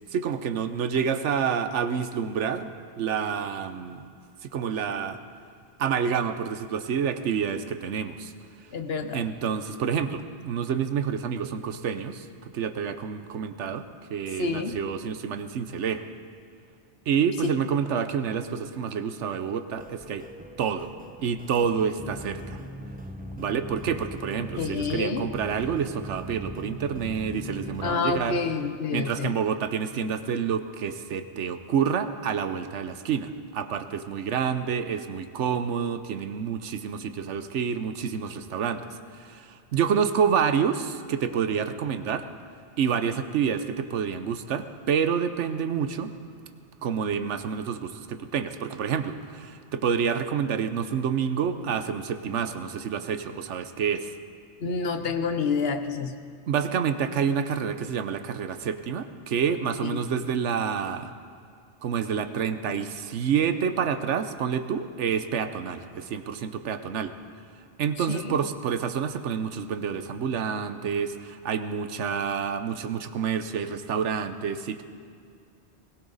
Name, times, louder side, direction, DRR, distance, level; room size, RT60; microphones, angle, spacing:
voice 1, 0.1-2.7 3.0-4.1 4.4-5.2 5.8-8.3 9.1-12.3 12.5-16.1 17.1-20.2 20.6-20.9 21.2-22.6 23.4-28.4 28.9-42.3 42.8-46.1 46.8-54.1 56.5-61.1 61.8-67.1 67.8-74.8, right 7 dB, 80° right, 10 dB, 1.1 m, -28 dB
voice 2, 8.7-9.2 14.3-14.8 24.6-25.3 27.8-29.3 54.6-56.2 59.8-60.0 68.0-68.4, left 5 dB, 60° left, 8 dB, 1.1 m, -28 dB
sound 1, 19.7-28.0, equal, 10° right, 0.6 m, -40 dB
20.0 x 18.0 x 4.0 m, 2.3 s
omnidirectional pair, 1.2 m